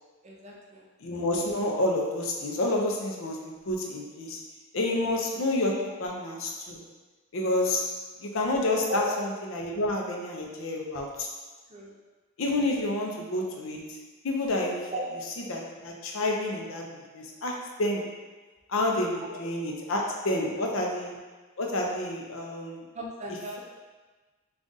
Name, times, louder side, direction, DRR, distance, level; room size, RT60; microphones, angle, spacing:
voice 1, 0.2-0.9 8.8-9.1 11.7-12.0 14.9-15.1 19.1-19.4 20.4-20.8 22.9-23.6, right 1 dB, 30° right, -3 dB, 0.5 m, -37 dB
voice 2, 1.0-4.4 4.7-6.8 7.3-7.8 8.2-11.3 12.4-13.8 14.2-14.9 15.5-17.5 17.8-18.0 18.7-21.2 21.6-22.8, left 1 dB, 65° left, 0 dB, 0.6 m, -29 dB
3.9 x 2.4 x 3.7 m, 1.3 s
head